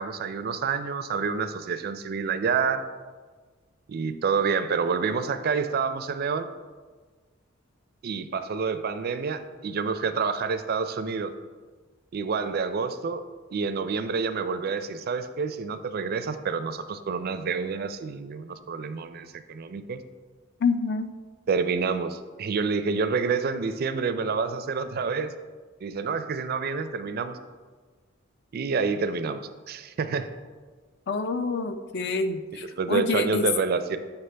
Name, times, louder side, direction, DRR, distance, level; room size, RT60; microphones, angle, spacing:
voice 1, 0.0-2.8 3.9-6.5 8.0-11.3 12.1-13.2 13.5-20.0 21.5-25.3 25.8-27.4 28.5-30.3 32.8-34.0, right 5 dB, 50° right, 10 dB, 0.4 m, -28 dB
voice 2, 20.6-21.1 31.1-33.5, left 3 dB, 55° left, 9 dB, 0.4 m, -27 dB
7.9 x 5.7 x 3.3 m, 1.4 s
head